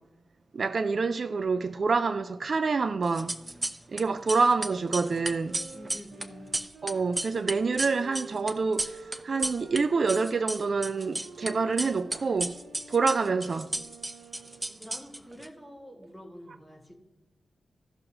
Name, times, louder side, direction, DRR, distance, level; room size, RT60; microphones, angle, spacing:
voice 1, 0.5-3.3 3.9-5.6 6.8-12.6 12.9-13.7, right 4 dB, 60° right, 0.4 m, -27 dB
sound 1, 3.1-4.0 4.3-9.8 10.1-11.5 11.8-15.5, right 2 dB, 30° right, 0.7 m, -33 dB
Wind instrument woodwind instrument, 4.8-14.8, right 4 dB, 85° right, 0.8 m, -48 dB
voice 2, 5.4-6.5 14.8-17.0, equal, 5° right, 1.9 m, -48 dB
16.0 x 6.4 x 2.9 m
cardioid pair, 70°, 0 cm